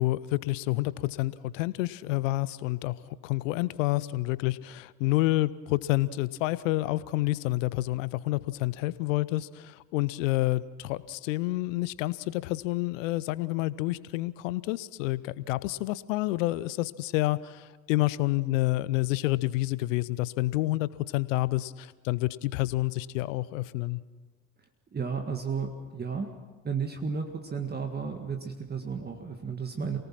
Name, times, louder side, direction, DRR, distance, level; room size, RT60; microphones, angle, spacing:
voice 1, 0.0-24.0, left 18 dB, 65° left, 18 dB, 0.9 m, -29 dB
voice 2, 24.9-26.3 26.6-30.0, right 5 dB, 25° right, 5 dB, 1.9 m, -33 dB
28.5 x 18.5 x 6.0 m, 1.3 s
figure-of-eight pair, 65°, 41 cm